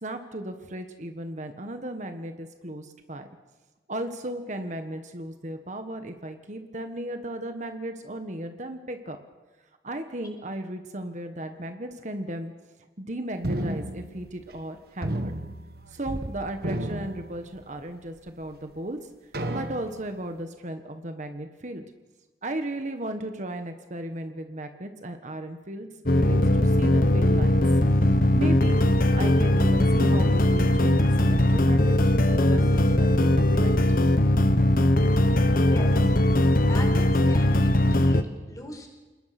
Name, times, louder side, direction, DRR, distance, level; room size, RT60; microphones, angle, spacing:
voice 1, 0.0-3.3 3.9-9.2 9.8-12.5 13.0-15.3 15.9-19.0 19.5-21.8 22.4-25.9 26.2-27.6 28.3-28.8 29.1-33.7, right 1 dB, 45° right, 6 dB, 1.5 m, -35 dB
sound 1, 13.4-14.7 15.0-16.3 16.6-17.9 18.5-18.6 19.3-20.2, right 1 dB, 60° right, 1.6 m, -33 dB
sound 2, 26.1-38.2, left 1 dB, 50° left, 1.2 m, -20 dB
voice 2, 35.6-36.1 36.6-38.9, left 1 dB, 20° left, 3 dB, 4.7 m, -40 dB
28.0 x 20.5 x 6.1 m, 1.2 s
head